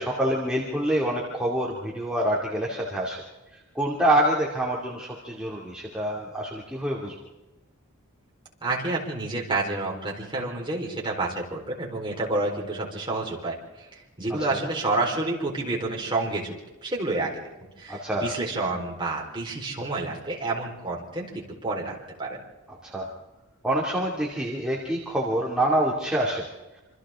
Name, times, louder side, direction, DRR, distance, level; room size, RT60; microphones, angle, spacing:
voice 1, 0.0-3.2 3.5-7.1 14.5-14.6 17.9-18.3 22.8-23.1 23.6-26.4, right 1 dB, 5° right, -5 dB, 2.7 m, -26 dB
voice 2, 8.6-16.6 16.8-17.4 17.8-22.4, right 2 dB, 20° right, -2 dB, 4.4 m, -29 dB
27.5 x 26.0 x 3.8 m, 1.1 s
head